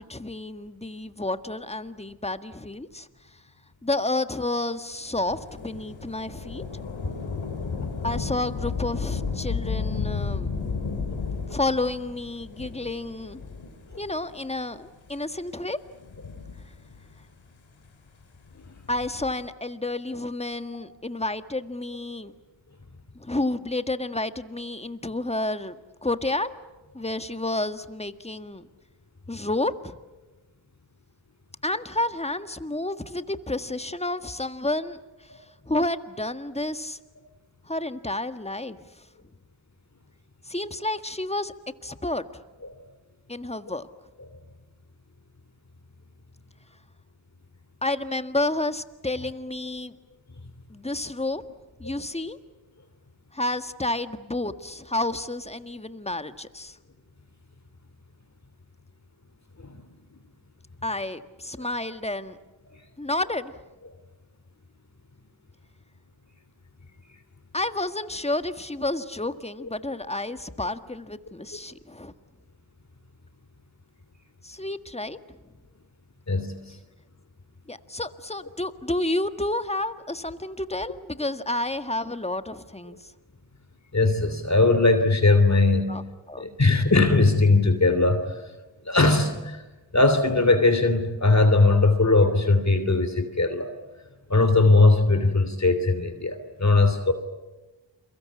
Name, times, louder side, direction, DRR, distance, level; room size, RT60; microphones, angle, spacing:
voice 1, 0.0-3.1 3.8-6.6 8.0-10.5 11.5-13.4 14.0-15.8 18.9-22.3 23.1-25.8 26.0-26.5 26.9-28.7 29.3-29.9 31.6-35.3 35.7-37.0 37.6-38.8 40.5-41.5 41.8-42.3 43.3-43.9 47.8-49.9 50.7-51.4 51.8-52.4 53.3-56.8 60.8-62.4 63.0-63.5 67.5-72.1 74.4-75.4 77.7-83.1 85.9-86.0 86.3-86.4, left 2 dB, 15° left, 10 dB, 1.7 m, -30 dB
Thunder / Rain, 5.2-14.1 14.9-15.0 15.9-17.2 18.7-19.5, left 5 dB, 75° left, 3.4 m, -33 dB
voice 2, 76.3-76.8 83.9-86.0 86.4-88.3 88.8-89.6 89.9-93.7 94.3-97.1, left 3 dB, 35° left, 9 dB, 3.0 m, -20 dB
30.0 x 23.0 x 8.5 m, 1.1 s
cardioid pair, 50°, 46 cm